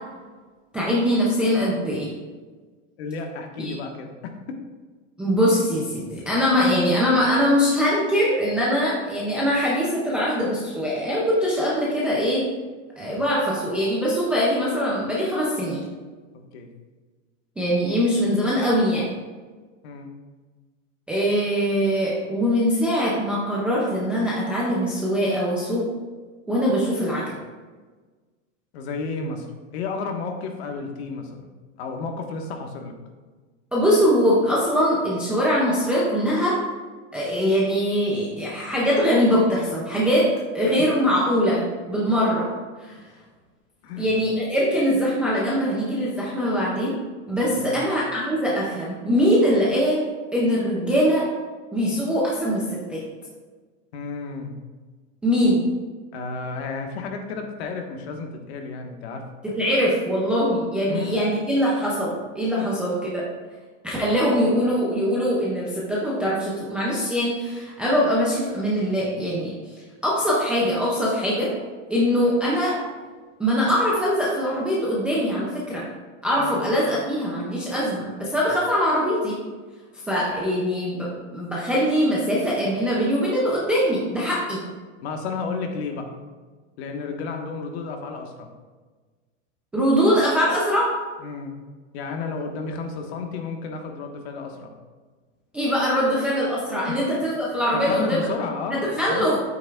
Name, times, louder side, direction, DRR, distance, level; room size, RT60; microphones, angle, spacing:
voice 1, 0.7-2.1 3.6-3.8 5.2-12.5 13.0-15.8 17.6-19.1 21.1-25.9 26.5-27.3 33.7-36.6 37.1-40.3 40.5-42.5 42.8-43.0 44.0-47.0 47.3-51.3 51.7-53.0 55.2-55.6 59.4-63.3 63.8-69.6 70.0-71.5 71.9-72.8 73.4-75.9 76.2-79.4 80.1-84.6 89.7-90.9 95.5-98.3 98.7-99.4, equal, 5° right, -7 dB, 0.3 m, -22 dB
voice 2, 3.0-4.6 16.3-16.7 19.8-20.1 28.7-31.5 31.8-32.9 43.8-44.2 47.6-47.8 53.9-54.5 56.1-59.2 60.9-61.3 76.4-76.6 85.0-86.1 86.8-88.5 91.2-91.5 91.9-94.7 96.9-97.0 97.7-99.3, left 4 dB, 55° left, 3 dB, 1.4 m, -32 dB
9.5 x 8.4 x 2.3 m, 1.4 s
supercardioid pair, 165°, 37 cm